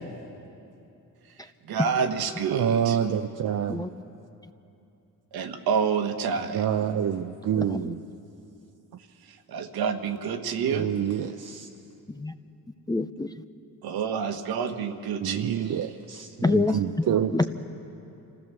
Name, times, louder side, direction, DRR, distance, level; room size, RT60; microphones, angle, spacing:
voice 1, 1.3-3.0 5.3-6.8 9.2-11.0 13.8-16.0, right 6 dB, 70° right, 7 dB, 1.5 m, -29 dB
voice 2, 2.5-3.8 6.5-8.0 10.7-11.7 15.2-17.3, right 9 dB, 55° right, 5 dB, 0.8 m, -27 dB
voice 3, 7.6-7.9 12.1-12.3 12.9-13.3 16.4-17.4, left 3 dB, 10° left, 10 dB, 0.6 m, -27 dB
26.5 x 15.0 x 7.0 m, 2.8 s
cardioid pair, 95°, 37 cm